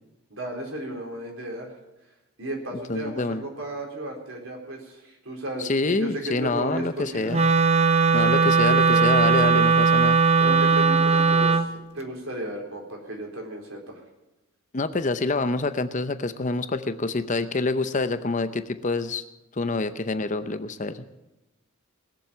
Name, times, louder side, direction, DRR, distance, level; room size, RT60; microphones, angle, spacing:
voice 1, 0.3-1.7 2.4-7.4 8.2-9.6 10.4-14.0, right 1 dB, 65° right, 0 dB, 4.2 m, -34 dB
voice 2, 2.9-3.4 5.6-7.5 8.1-10.2 14.7-19.2 19.5-21.0, left 3 dB, 35° left, 11 dB, 0.7 m, -27 dB
Wind instrument woodwind instrument, 7.3-11.7, right 4 dB, 30° right, 0.7 m, -19 dB
20.5 x 7.4 x 8.6 m, 0.98 s
head